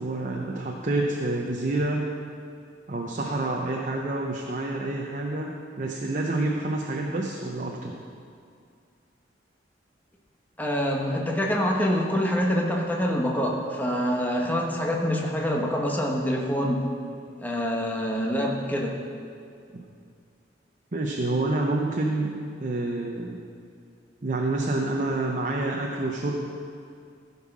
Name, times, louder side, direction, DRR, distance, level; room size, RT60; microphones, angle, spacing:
voice 1, 0.0-2.1 2.9-7.9 19.7-19.9 20.9-23.4 24.2-26.4, right 2 dB, 45° right, 0 dB, 0.8 m, -28 dB
voice 2, 10.6-16.9 17.4-18.9, equal, 10° left, -1 dB, 1.3 m, -26 dB
15.0 x 5.6 x 6.1 m, 2.3 s
head